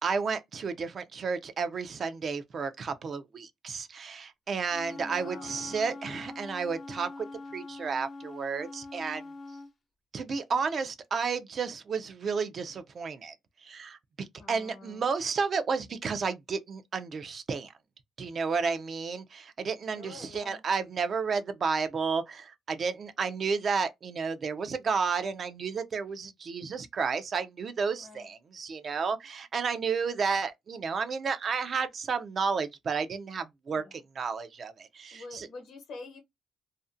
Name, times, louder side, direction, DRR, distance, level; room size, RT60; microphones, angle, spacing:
voice 1, 0.0-7.3 7.5-9.2 10.1-17.7 18.2-35.5, right 5 dB, 50° right, 0.3 m, -32 dB
Wind instrument woodwind instrument, 4.6-9.7, left 3 dB, 40° left, 0.4 m, -43 dB
voice 2, 5.0-5.5 5.8-6.0 14.4-15.0 20.0-20.6 28.0-28.3 33.7-34.0 35.1-36.2, left 3 dB, 70° left, 0.9 m, -47 dB
2.5 x 2.0 x 2.4 m
cardioid pair, 90°, 0 cm